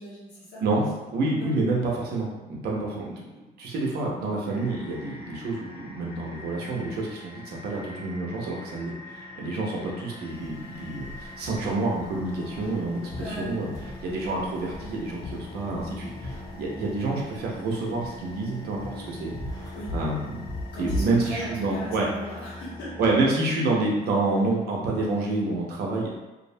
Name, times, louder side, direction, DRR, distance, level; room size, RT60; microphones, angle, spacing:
voice 1, 0.0-0.6 1.3-1.5 13.1-14.0 19.7-19.9 20.7-23.0, equal, 90° left, -8 dB, 1.2 m, -39 dB
voice 2, 0.6-19.3 19.9-20.4 20.8-22.5 23.0-26.2, right 2 dB, 70° right, -2 dB, 0.7 m, -28 dB
sound 1, 4.5-23.3, left 2 dB, 75° left, 0.8 m, -43 dB
sound 2, 10.3-21.2, left 1 dB, 20° left, 0.5 m, -39 dB
2.6 x 2.0 x 2.6 m, 1.1 s
cardioid pair, 110°, 17 cm